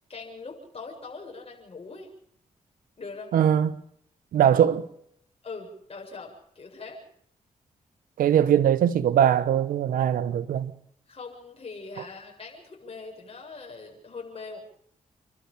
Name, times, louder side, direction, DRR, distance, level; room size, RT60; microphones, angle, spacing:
voice 1, 0.1-2.1 3.0-3.3 5.4-7.0 11.1-14.6, left 4 dB, 45° left, 7.7 m, -41 dB
voice 2, 3.3-3.7 4.3-4.9 8.2-10.7, right 9 dB, 90° right, 1.2 m, -21 dB
29.0 x 12.5 x 8.5 m
cardioid pair, 55°, 14 cm